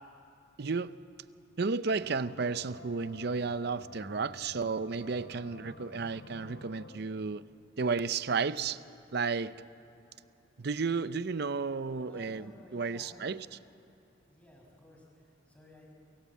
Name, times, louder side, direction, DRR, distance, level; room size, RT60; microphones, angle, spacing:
voice 1, 0.6-1.0 1.6-7.4 7.8-8.8 9.1-9.6 10.6-13.5, right 4 dB, 55° right, 0.6 m, -33 dB
sound 1, 2.0-7.0, left 2 dB, 85° left, 2.4 m, -51 dB
voice 2, 12.0-13.4 14.2-15.9, equal, 5° left, 5.7 m, -56 dB
27.5 x 23.5 x 8.4 m
head